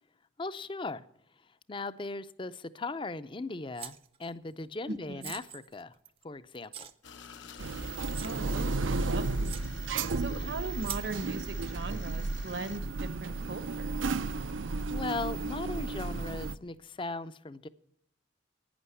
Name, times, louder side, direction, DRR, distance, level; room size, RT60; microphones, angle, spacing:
voice 1, 0.4-1.1 1.7-6.0 6.2-6.9 10.0-10.5 14.9-17.7, left 3 dB, 25° left, 0.5 m, -38 dB
sound 1, 3.8-4.3 5.2-6.2 6.7-6.9 7.6-7.7 8.1-8.4 9.0-9.1 9.4-9.7 10.8-11.1, right 9 dB, 30° right, 0.6 m, -42 dB
voice 2, 4.9-5.3 8.2-9.8 10.2-14.2, right 2 dB, 60° right, 0.9 m, -40 dB
sound 2, 7.0-12.8, left 6 dB, 70° left, 0.9 m, -51 dB
sound 3, 7.6-16.5, right 3 dB, 80° right, 0.6 m, -33 dB
11.0 x 9.8 x 9.6 m
head